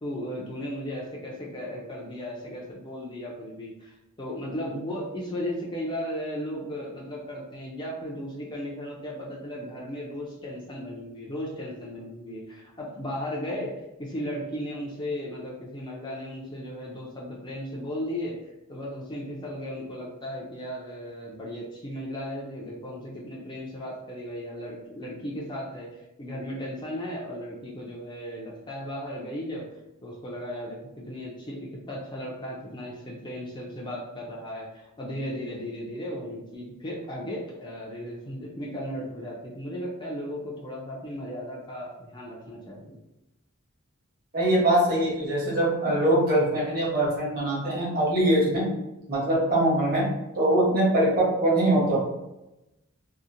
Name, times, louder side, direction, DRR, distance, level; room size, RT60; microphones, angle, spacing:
voice 1, 0.0-18.3 18.7-25.9 26.2-29.6 30.0-42.9, equal, 20° left, -4 dB, 0.4 m, -36 dB
voice 2, 44.3-48.7 49.1-50.1 50.4-52.0, right 1 dB, 45° right, -6 dB, 1.0 m, -22 dB
2.7 x 2.0 x 2.5 m, 0.94 s
head